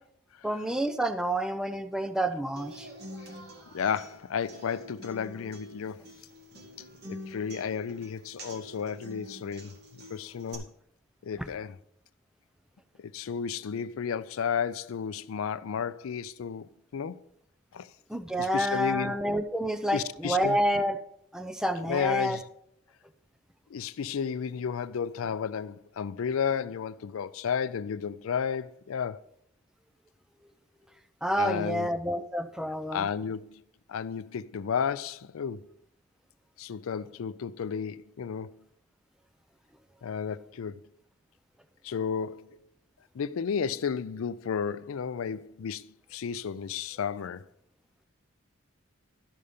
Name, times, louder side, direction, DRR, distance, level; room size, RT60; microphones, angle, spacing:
voice 1, 0.4-2.9 18.1-21.0 21.3-22.4 31.2-33.1, equal, 5° right, 0.5 m, -29 dB
Human voice / Acoustic guitar, 2.6-10.5, equal, 50° right, 2.1 m, -47 dB
voice 2, 3.7-6.1 7.1-10.7 11.2-11.8 13.0-17.2 17.7-17.9 18.4-19.2 19.9-20.6 21.8-22.4 23.7-29.2 31.4-31.9 32.9-33.6 33.9-35.7 36.6-38.6 40.0-40.8 41.8-42.6 43.1-47.4, left 7 dB, 85° left, 0.4 m, -33 dB
12.5 x 5.5 x 5.1 m
head